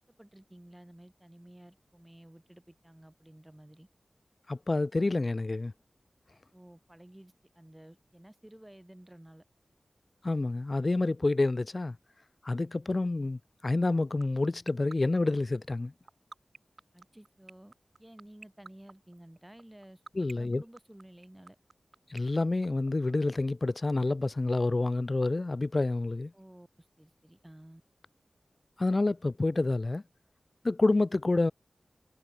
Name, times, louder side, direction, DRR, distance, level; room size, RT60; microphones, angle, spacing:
voice 1, 0.0-3.9 6.5-9.4 16.9-20.0 20.3-21.6 26.3-26.7 27.0-27.8, right 1 dB, 15° right, 5.0 m, -53 dB
voice 2, 4.5-5.7 10.2-12.0 12.4-15.9 20.1-20.6 22.1-26.3 28.8-30.0 30.6-31.5, left 2 dB, 45° left, 0.6 m, -28 dB
sound 1, 13.7-23.4, right 3 dB, 60° right, 1.5 m, -47 dB
wide cardioid pair, 55°, 0 cm